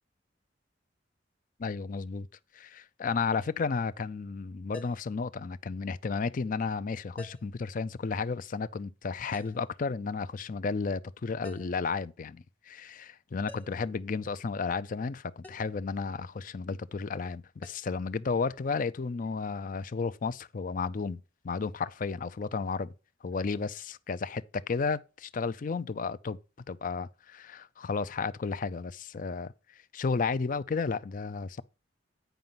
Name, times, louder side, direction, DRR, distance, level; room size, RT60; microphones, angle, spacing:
voice 1, 1.6-2.3 2.5-22.9 23.2-26.4 26.7-31.6, left 4 dB, 45° left, 0.4 m, -33 dB
sound 1, 4.7-5.1 7.2-7.6 9.3-9.7 11.4-11.8 13.5-13.9 15.4-15.7 17.6-17.8, left 1 dB, 10° left, 0.8 m, -48 dB
9.2 x 5.2 x 5.6 m
head